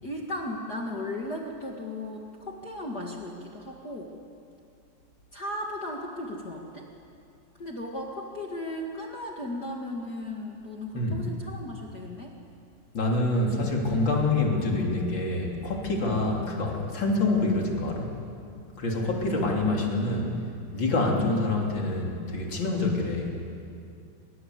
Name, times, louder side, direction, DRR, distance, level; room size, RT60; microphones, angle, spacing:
voice 1, 0.0-4.1 5.3-6.9 7.6-12.3 16.0-16.3 19.4-19.9, left 1 dB, 50° left, 0 dB, 1.1 m, -36 dB
voice 2, 12.9-18.1 18.8-20.3 20.7-23.3, left 2 dB, 30° left, -1 dB, 3.4 m, -26 dB
25.0 x 22.5 x 8.0 m, 2.5 s
omnidirectional pair, 4.9 m